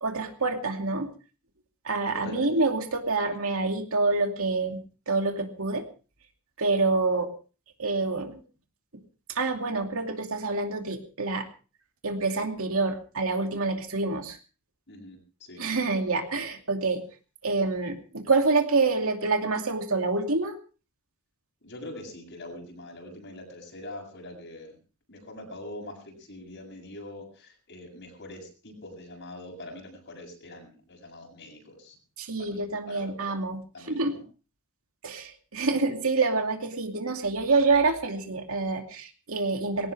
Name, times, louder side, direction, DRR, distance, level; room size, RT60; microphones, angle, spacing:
voice 1, 0.0-1.1 1.8-5.8 6.6-7.3 7.8-8.4 9.3-11.5 12.0-14.4 15.6-17.0 17.4-20.5 32.2-34.2 35.0-39.9, right 3 dB, 65° right, 4 dB, 2.6 m, -27 dB
voice 2, 2.1-2.7 14.9-15.6 21.6-24.8 25.1-32.0 32.4-32.6 32.9-33.3 33.7-34.2, left 1 dB, 55° left, 2 dB, 7.8 m, -43 dB
21.0 x 17.5 x 3.5 m, 0.36 s
head